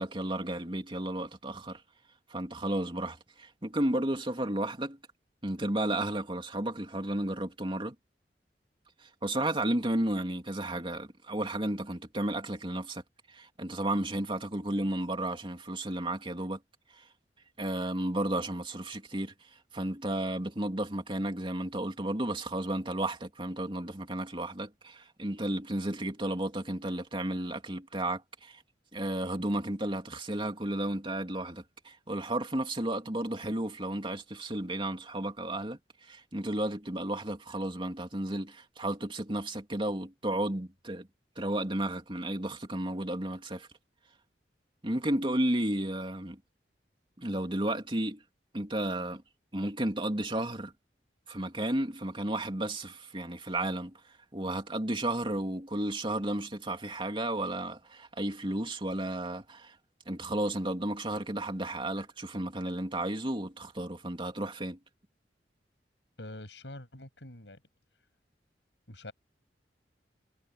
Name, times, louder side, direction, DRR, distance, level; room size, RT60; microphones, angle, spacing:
voice 1, 0.0-1.8 2.3-5.0 5.4-7.9 9.2-13.0 13.3-16.6 17.0-17.1 17.6-19.3 19.7-28.6 28.9-41.1 41.4-43.7 44.8-46.4 47.2-48.2 48.5-49.2 49.5-50.7 51.3-53.9 54.3-59.7 60.1-64.8, right 1 dB, 30° right, 2.9 m, -33 dB
voice 2, 66.2-67.6 68.9-69.1, left 1 dB, 90° left, 7.8 m, -45 dB
head